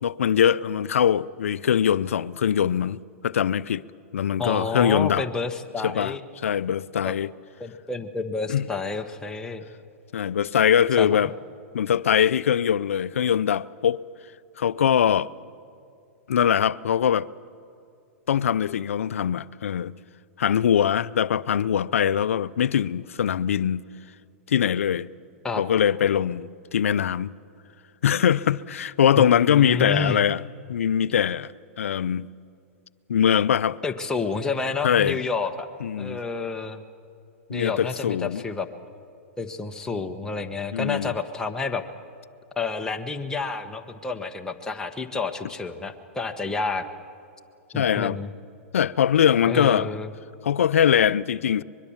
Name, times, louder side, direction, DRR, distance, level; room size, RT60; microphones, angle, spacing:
voice 1, 0.0-3.8 4.1-5.2 5.8-6.2 6.4-7.3 8.5-8.7 10.1-11.3 11.7-14.0 14.6-15.3 16.3-17.3 18.3-19.9 20.4-23.8 24.5-25.1 25.6-27.3 28.0-30.4 30.7-32.3 33.1-33.8 34.8-35.2 35.8-36.2 37.5-38.4 40.7-41.1 47.7-48.2 48.7-49.9 50.4-51.6, left 9 dB, 85° left, 0.5 m, -22 dB
voice 2, 4.4-6.2 7.0-7.1 7.6-9.7 11.0-11.1 25.4-25.6 29.2-30.2 33.8-35.7 36.0-36.8 37.5-38.7 39.4-41.8 42.6-46.8 47.7-48.3 49.4-50.1, left 4 dB, 10° left, 1.2 m, -29 dB
24.0 x 22.0 x 7.3 m
hypercardioid pair, 125°, 7 cm